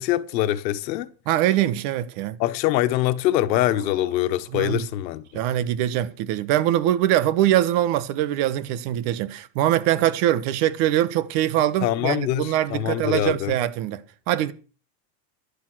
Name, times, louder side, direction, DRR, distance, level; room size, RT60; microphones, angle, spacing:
voice 1, 0.0-1.1 2.4-5.4 11.8-13.5, left 13 dB, 85° left, 1.5 m, -24 dB
voice 2, 1.3-2.4 4.5-4.8 5.3-14.0 14.3-14.5, right 12 dB, 55° right, 1.5 m, -23 dB
sound 1, 3.5-5.3, right 4 dB, 20° right, 1.9 m, -47 dB
12.0 x 11.5 x 6.3 m
supercardioid pair, 145°, 50 cm